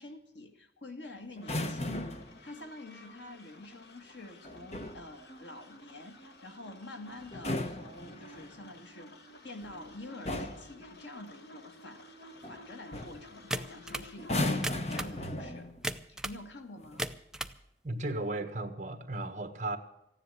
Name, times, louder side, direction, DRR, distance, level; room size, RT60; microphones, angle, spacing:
voice 1, 0.0-9.2 9.4-12.1 12.5-15.7 16.1-17.0, left 1 dB, 90° left, 5 dB, 2.0 m, -47 dB
sound 1, 1.4-15.4, left 2 dB, 65° left, 1.6 m, -53 dB
sound 2, 1.4-2.4 4.4-5.1 7.2-8.6 9.6-9.9 10.3-10.7 12.4-12.6 12.9-13.2 14.2-15.9 16.8-17.0, left 1 dB, 35° left, 1.1 m, -35 dB
sound 3, 13.5-14.1 14.5-15.2 15.8-16.4 16.8-17.6, right 1 dB, 5° right, 0.5 m, -36 dB
voice 2, 17.8-19.8, right 2 dB, 40° right, 7 dB, 1.5 m, -35 dB
15.0 x 10.0 x 8.2 m, 0.83 s
head